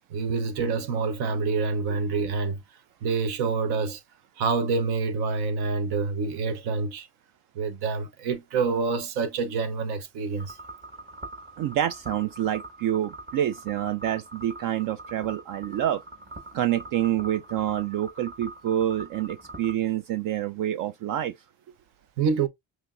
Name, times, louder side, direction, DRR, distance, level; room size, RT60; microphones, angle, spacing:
voice 1, 0.1-2.6 3.0-4.0 4.4-7.1 7.5-10.6 22.2-22.5, right 4 dB, 80° right, 1.0 m, -27 dB
sound 1, 10.4-19.7, right 2 dB, 30° right, 1.6 m, -43 dB
voice 2, 11.6-16.0 16.5-21.4, right 11 dB, 60° right, 0.5 m, -27 dB
5.6 x 2.9 x 2.5 m
cardioid pair, 95°, 38 cm